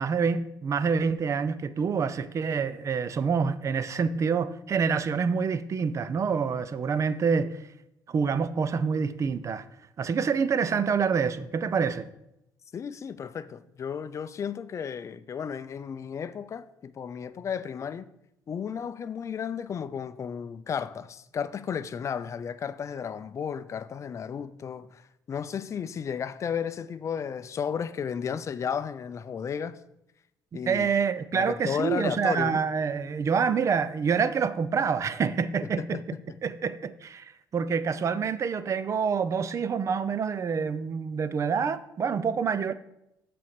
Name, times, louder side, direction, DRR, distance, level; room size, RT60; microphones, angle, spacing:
voice 1, 0.0-7.6 8.1-9.6 10.0-12.1 30.5-36.0 36.4-42.7, right 6 dB, 40° right, 0.5 m, -27 dB
voice 2, 12.7-18.1 18.5-25.0 25.3-29.8 30.5-30.9 31.3-32.6 35.8-36.2, left 7 dB, 40° left, 0.5 m, -33 dB
7.6 x 4.3 x 6.5 m
cardioid pair, 105°, 8 cm